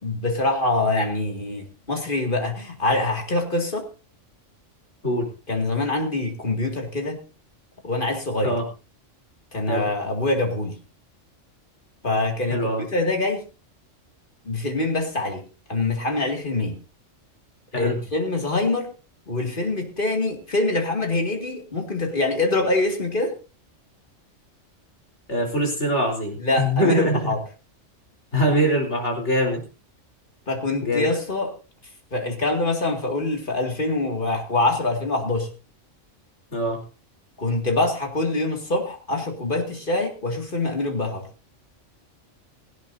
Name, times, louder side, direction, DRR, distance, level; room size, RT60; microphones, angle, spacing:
voice 1, 0.0-3.9 5.5-7.2 7.8-8.6 9.5-10.7 12.0-13.4 14.5-15.4 15.7-16.8 17.7-18.9 19.3-23.3 26.4-27.4 30.5-31.6 32.1-35.5 37.4-41.3, left 2 dB, 40° left, 2.6 m, -24 dB
voice 2, 12.5-12.8 17.7-18.0 25.3-27.3 28.3-29.6 30.8-31.1 36.5-36.8, equal, 65° left, 4.5 m, -23 dB
17.5 x 16.0 x 2.7 m
omnidirectional pair, 1.3 m